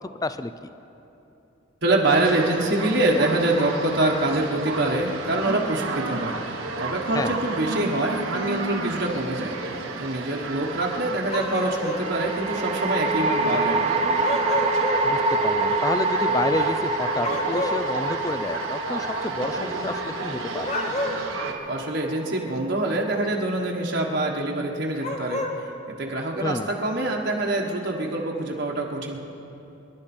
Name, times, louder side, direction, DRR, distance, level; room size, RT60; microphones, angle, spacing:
voice 1, 1.8-9.6 10.0-13.9 21.6-25.4 26.0-29.2, right 2 dB, 60° right, -1 dB, 1.4 m, -25 dB
sound 1, 2.0-21.5, right 3 dB, 85° right, 1.5 m, -33 dB
sound 2, 8.8-9.5 12.0-23.3, right 2 dB, 30° right, 0.7 m, -27 dB
sound 3, 11.3-12.1 14.2-15.1 17.2-17.9 20.6-21.4 25.0-25.6, left 2 dB, 35° left, 1.2 m, -29 dB
voice 2, 15.0-20.7 26.4-26.7, left 2 dB, 20° left, 12 dB, 0.4 m, -29 dB
26.5 x 11.5 x 4.4 m, 2.9 s
head